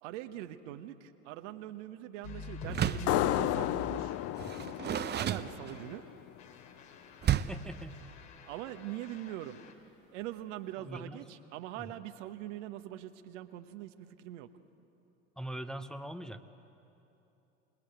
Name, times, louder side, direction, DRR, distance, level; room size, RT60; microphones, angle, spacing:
voice 1, 0.0-4.2 5.1-6.0 8.5-9.6 10.1-14.5, right 13 dB, 65° right, 9 dB, 1.3 m, -42 dB
sound 1, 2.2-6.1 6.4-9.7, left 4 dB, 60° left, 3.4 m, -47 dB
Door, 2.7-3.2 4.4-6.0 7.2-7.7, right 10 dB, 25° right, 0.8 m, -32 dB
sound 2, 3.1-6.4, left 14 dB, 40° left, 0.6 m, -33 dB
voice 2, 7.5-8.0 10.8-11.9 15.4-16.4, right 1 dB, ahead, 8 dB, 0.9 m, -42 dB
26.5 x 20.0 x 9.2 m, 2.9 s
hypercardioid pair, 80°, 40 cm